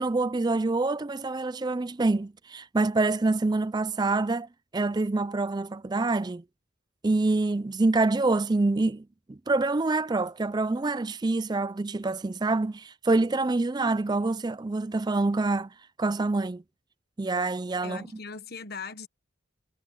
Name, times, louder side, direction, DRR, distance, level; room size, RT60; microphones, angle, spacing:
voice 1, 0.0-4.5 4.7-6.4 7.0-15.7 16.0-16.6 17.2-18.0, right 3 dB, 20° right, 0.4 m, -26 dB
voice 2, 17.8-19.1, left 5 dB, 50° left, 1.3 m, -39 dB
head